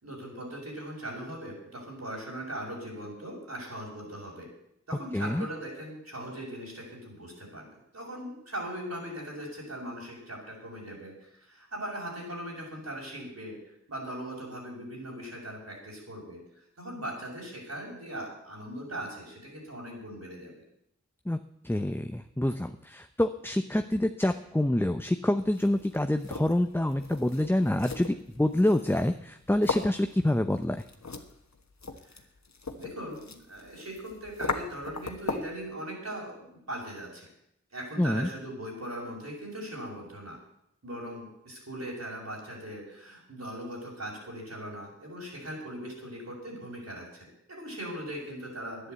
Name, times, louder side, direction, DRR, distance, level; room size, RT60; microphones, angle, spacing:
voice 1, 0.0-4.5 4.9-7.7 7.9-16.4 16.8-20.5 32.0-32.2 32.7-37.3 37.7-40.4 40.8-48.9, right 1 dB, 65° right, -3 dB, 6.2 m, -39 dB
voice 2, 5.1-5.5 21.3-21.4 21.6-30.8 38.0-38.3, left 1 dB, 10° left, 8 dB, 0.7 m, -27 dB
sound 1, 25.4-35.6, left 4 dB, 70° left, 1.4 m, -39 dB
11.0 x 10.0 x 8.1 m, 0.76 s
wide cardioid pair, 50°, 29 cm